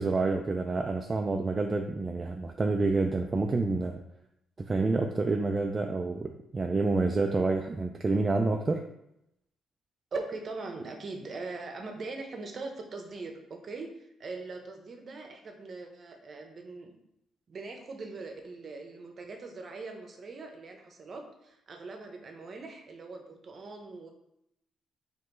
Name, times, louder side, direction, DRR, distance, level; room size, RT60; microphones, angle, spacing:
voice 1, 0.0-4.0 4.6-8.9, right 3 dB, 30° right, 4 dB, 0.3 m, -28 dB
voice 2, 10.1-17.0 17.5-24.1, right 3 dB, 45° right, 3 dB, 0.8 m, -41 dB
4.3 x 3.1 x 3.8 m, 0.80 s
cardioid pair, 90°, 0 cm